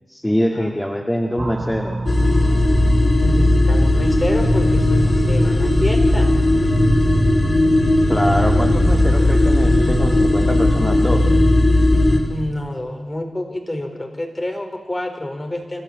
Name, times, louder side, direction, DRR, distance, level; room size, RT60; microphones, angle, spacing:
voice 1, 0.1-2.0 8.1-11.3, equal, 10° left, 2 dB, 2.2 m, -23 dB
voice 2, 1.3-1.8 3.2-6.4 12.3-15.8, left 1 dB, 25° left, 4 dB, 4.8 m, -28 dB
sound 1, 1.4-7.7, right 2 dB, 40° right, 2.7 m, -30 dB
sound 2, 2.1-12.2, left 1 dB, 55° left, 4.9 m, -16 dB
29.0 x 13.0 x 8.3 m, 1.2 s
cardioid pair, 45°, 0 cm